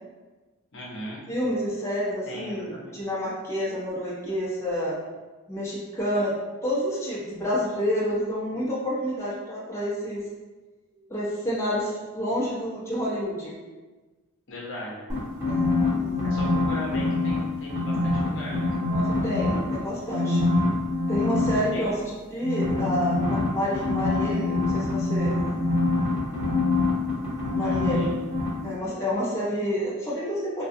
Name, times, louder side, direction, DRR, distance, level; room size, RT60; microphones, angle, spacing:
voice 1, 0.7-1.2 2.3-3.0 14.5-15.0 16.2-18.8 21.7-22.0 27.6-28.2, left 1 dB, 55° left, -5 dB, 0.8 m, -38 dB
voice 2, 1.3-5.0 5.5-6.3 6.6-10.2 11.1-13.5 15.4-15.7 15.9-16.4 18.9-20.5 21.1-25.3 27.5-28.1 28.6-30.7, equal, 15° left, -9 dB, 0.8 m, -29 dB
sound 1, 15.1-17.4 17.7-19.7 20.1-21.6 22.4-28.1 28.3-28.5, left 2 dB, 15° right, 1.3 m, -25 dB
3.7 x 2.3 x 2.6 m, 1.3 s
head